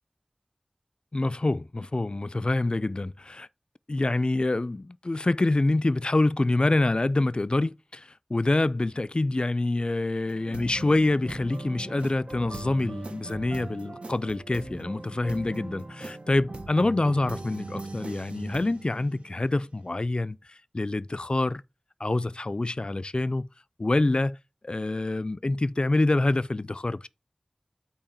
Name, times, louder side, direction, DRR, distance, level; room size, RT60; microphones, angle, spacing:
voice 1, 1.1-3.5 3.9-21.6 22.0-23.5 23.8-24.4 24.6-27.1, left 2 dB, 50° left, 0.3 m, -26 dB
sound 1, 10.3-19.9, right 2 dB, 75° right, 0.8 m, -40 dB
8.7 x 2.9 x 5.7 m
wide cardioid pair, 45°, 2 cm